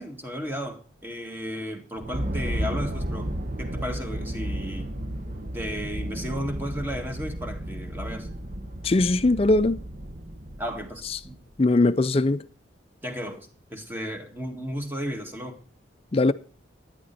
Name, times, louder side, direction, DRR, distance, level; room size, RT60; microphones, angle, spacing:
voice 1, 0.0-4.9 5.5-8.3 10.6-11.4 13.0-15.6, equal, 10° right, 1.9 m, -34 dB
sound 1, 2.0-11.6, right 1 dB, 45° right, 1.1 m, -33 dB
voice 2, 8.8-9.8 11.1-11.2 11.6-12.4 16.1-16.3, left 2 dB, 30° left, 0.5 m, -20 dB
11.5 x 10.5 x 4.2 m
head